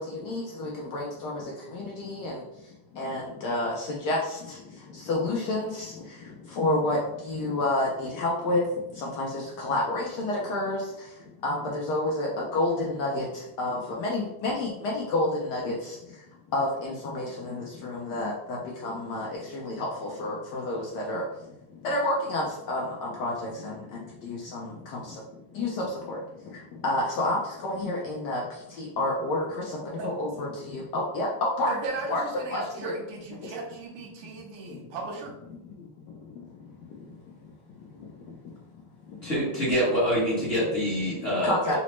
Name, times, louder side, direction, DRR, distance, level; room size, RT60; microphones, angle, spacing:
voice 1, 0.0-1.4 1.7-2.4 3.0-4.4 5.1-5.9 6.6-7.0 7.2-8.6 9.0-10.8 11.4-13.2 13.6-16.0 16.5-18.6 18.8-21.2 21.8-23.7 24.2-24.7 25.5-26.2 26.8-28.4 28.8-31.8 32.1-32.2 32.5-32.9 41.4-41.8, left 2 dB, 80° left, -2 dB, 0.9 m, -29 dB
voice 2, 31.7-35.3 41.6-41.8, right 3 dB, 90° right, 0 dB, 1.6 m, -36 dB
voice 3, 39.2-41.8, equal, 40° left, -8 dB, 0.9 m, -26 dB
4.0 x 2.1 x 2.9 m, 0.88 s
omnidirectional pair, 2.4 m